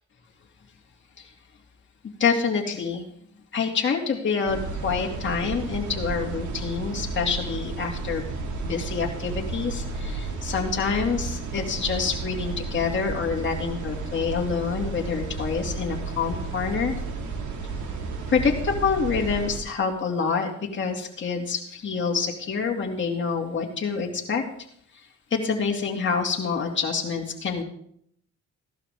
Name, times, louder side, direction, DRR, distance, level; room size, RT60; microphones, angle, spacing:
voice 1, 2.2-3.0 3.5-8.2 8.6-16.9 18.3-24.4 25.3-27.6, left 5 dB, 40° left, 0 dB, 2.4 m, -27 dB
sound 1, 4.5-19.6, right 3 dB, 75° right, 2.3 m, -32 dB
15.5 x 12.0 x 3.6 m, 0.67 s
cardioid pair, 90°, 30 cm